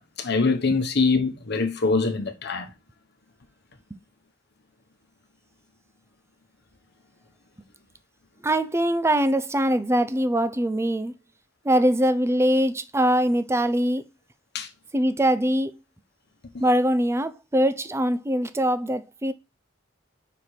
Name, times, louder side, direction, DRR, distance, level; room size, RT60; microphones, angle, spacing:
voice 1, 0.0-2.7 14.5-14.7 16.5-16.6, left 4 dB, 55° left, 1.1 m, -24 dB
voice 2, 8.4-11.1 11.6-14.0 14.9-15.7 16.6-19.3, right 1 dB, 15° right, 0.5 m, -22 dB
5.9 x 4.5 x 4.9 m
head